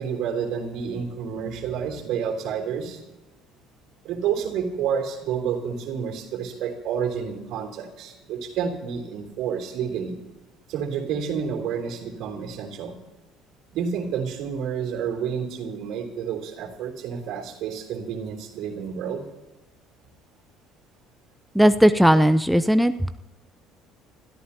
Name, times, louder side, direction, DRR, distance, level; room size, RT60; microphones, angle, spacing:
voice 1, 0.0-3.0 4.0-10.2 10.7-12.9 13.7-19.3, right 7 dB, 65° right, 3 dB, 3.2 m, -29 dB
voice 2, 21.5-22.9, equal, ahead, 11 dB, 0.6 m, -17 dB
28.0 x 13.5 x 2.8 m, 1.1 s
hypercardioid pair, 70°, 0 cm